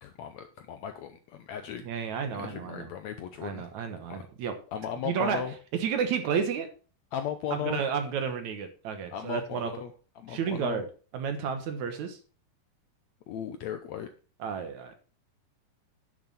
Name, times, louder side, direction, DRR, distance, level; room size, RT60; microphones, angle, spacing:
voice 1, 0.0-1.8 2.3-3.7 4.1-4.2 4.7-5.5 7.1-7.8 9.1-10.8 13.3-14.1, left 9 dB, 75° left, 8 dB, 1.7 m, -36 dB
voice 2, 1.8-2.9 3.4-4.5 5.0-5.4 5.7-6.7 7.5-9.7 10.3-10.9 11.1-12.2 14.4-14.9, right 7 dB, 65° right, 7 dB, 2.4 m, -31 dB
10.5 x 7.1 x 4.3 m, 0.37 s
omnidirectional pair, 3.9 m